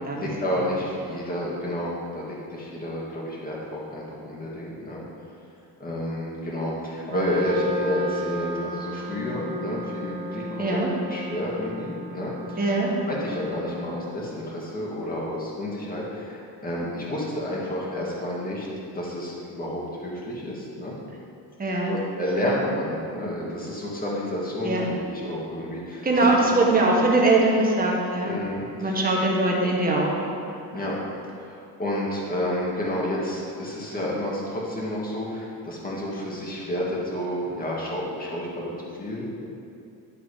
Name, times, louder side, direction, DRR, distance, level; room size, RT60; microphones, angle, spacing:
voice 1, 0.2-5.0 5.8-10.8 11.1-12.6 13.1-18.7 18.9-21.0 21.8-26.3 26.6-26.7 28.2-29.1 30.5-39.5, left 1 dB, 25° left, -5 dB, 2.0 m, -30 dB
Wind instrument woodwind instrument, 7.1-14.2, right 1 dB, 55° right, 1.7 m, -34 dB
voice 2, 10.6-10.9 12.6-12.9 21.6-21.9 22.4-22.5 24.6-24.8 26.0-28.3 28.8-30.2, right 2 dB, 25° right, -2 dB, 1.4 m, -21 dB
11.5 x 3.9 x 5.0 m, 2.6 s
cardioid pair, 125°, 37 cm